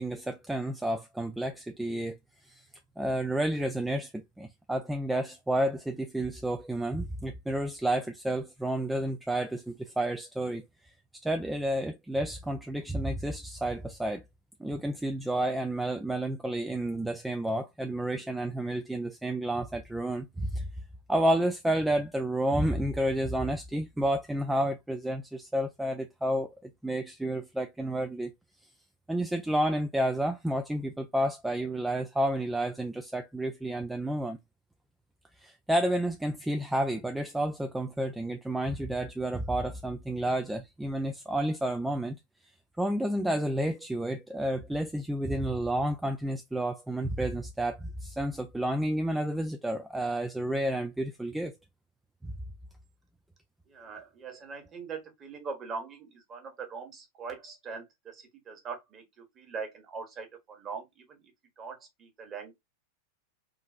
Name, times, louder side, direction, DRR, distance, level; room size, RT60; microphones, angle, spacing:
voice 1, 0.0-2.2 2.5-2.6 3.0-10.6 11.2-14.2 14.6-20.7 21.1-28.3 29.1-34.4 35.4-42.2 42.8-51.6 52.2-52.3, right 1 dB, 5° right, 0.3 m, -30 dB
voice 2, 53.7-61.2 61.6-62.5, right 5 dB, 25° right, 1.3 m, -41 dB
3.8 x 2.5 x 2.4 m
figure-of-eight pair, 90°, 0 cm